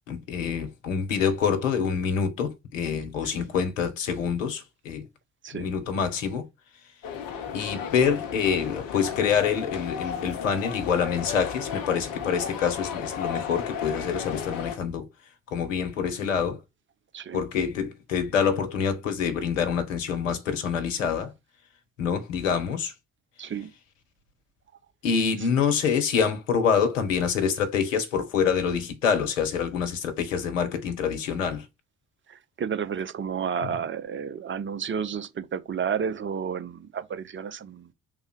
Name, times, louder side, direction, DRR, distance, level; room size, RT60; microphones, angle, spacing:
voice 1, 0.1-5.0 5.5-6.5 7.5-15.1 15.5-16.6 17.3-21.3 22.0-22.9 25.0-31.6 33.6-33.7, left 7 dB, 75° left, 1.2 m, -26 dB
sound 1, 7.0-14.8, left 7 dB, 60° left, 1.2 m, -34 dB
voice 2, 23.4-23.7 32.3-37.9, right 7 dB, 30° right, 1.0 m, -31 dB
5.3 x 3.9 x 4.8 m
figure-of-eight pair, 45°, 39 cm